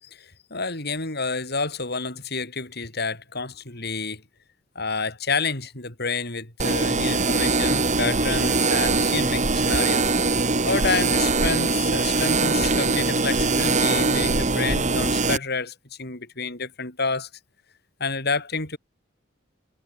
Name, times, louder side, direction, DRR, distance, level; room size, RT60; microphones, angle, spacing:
voice 1, 0.0-4.2 4.7-10.1 10.4-17.3 18.0-18.8, left 4 dB, 55° left, 6.3 m, -29 dB
sound 1, 6.6-15.4, right 3 dB, 40° right, 4.0 m, -22 dB
head